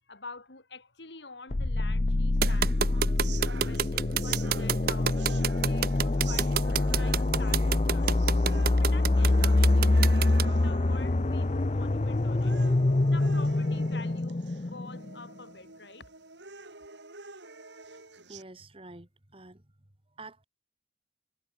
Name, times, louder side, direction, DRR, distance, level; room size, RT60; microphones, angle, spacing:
voice 1, 0.1-3.1 3.6-8.2 8.8-12.6 13.0-16.1, left 3 dB, 80° left, 4.2 m, -47 dB
sound 1, 1.5-15.3, left 2 dB, 40° left, 0.7 m, -25 dB
sound 2, 2.4-10.4, right 8 dB, 55° right, 0.7 m, -28 dB
sound 3, 2.4-18.4, right 4 dB, 85° right, 5.6 m, -47 dB
voice 2, 18.3-19.7 20.2-20.4, right 2 dB, 30° right, 2.4 m, -48 dB
head